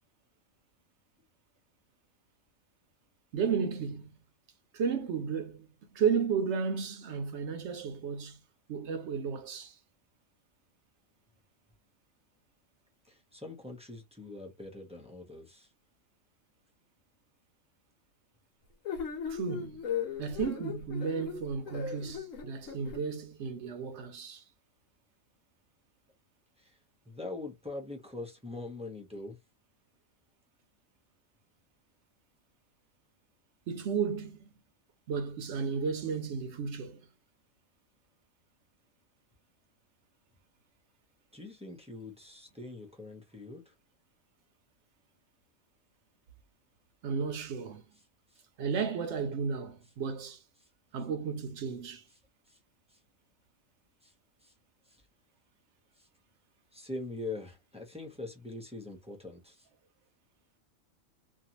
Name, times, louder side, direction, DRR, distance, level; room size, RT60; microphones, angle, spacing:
voice 1, 3.3-4.1 4.7-5.7 5.9-8.4 8.7-9.8 19.3-19.8 20.2-24.4 33.7-34.4 35.1-37.0 47.0-47.8 48.6-50.4 50.9-52.1, right 6 dB, 65° right, 0.8 m, -33 dB
voice 2, 13.0-15.7 26.6-26.8 27.1-29.4 41.3-43.7 48.3-48.4 52.5-52.6 52.9-53.0 54.0-54.1 54.4-54.5 54.9-55.0 56.0-56.1 56.7-59.7, left 2 dB, 10° right, 0.4 m, -43 dB
sound 1, 18.8-23.0, left 7 dB, 70° left, 1.2 m, -37 dB
2.6 x 2.3 x 2.9 m
omnidirectional pair, 1.4 m